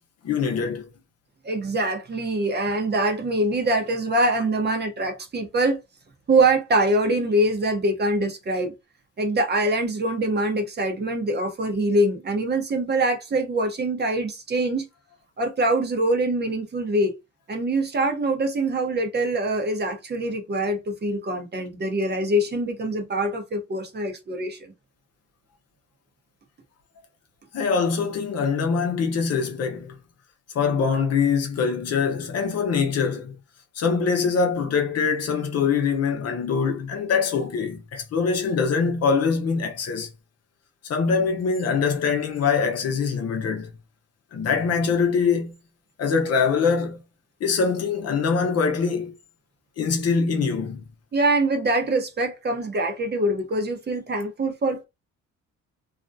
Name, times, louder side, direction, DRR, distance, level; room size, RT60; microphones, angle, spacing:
voice 1, 0.2-0.9 27.5-30.0 30.5-33.3 33.7-40.1 40.8-43.7 44.3-45.5 46.0-47.0 47.4-49.1 49.8-50.8, left 5 dB, 55° left, 0.7 m, -23 dB
voice 2, 1.4-5.8 6.3-8.7 9.2-14.8 15.4-17.2 17.5-24.7 51.1-54.8, right 1 dB, 35° right, 0.7 m, -24 dB
2.4 x 2.1 x 2.5 m
cardioid pair, 90°, 30 cm